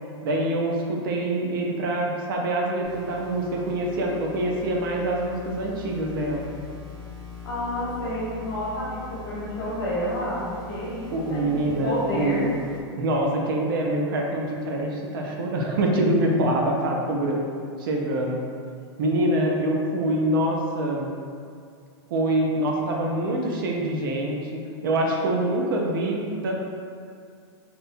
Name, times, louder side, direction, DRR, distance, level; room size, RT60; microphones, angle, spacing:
voice 1, 0.2-6.5 11.1-12.4 13.0-17.4 17.8-18.4 19.0-21.1 22.1-26.5, right 1 dB, 55° right, 0 dB, 0.4 m, -25 dB
sound 1, 2.8-12.8, left 5 dB, 90° right, 1.0 m, -41 dB
voice 2, 7.4-11.5 11.8-12.5 23.0-23.1, equal, 55° left, -7 dB, 1.0 m, -30 dB
2.7 x 2.1 x 2.5 m, 2.2 s
supercardioid pair, 175°, 14 cm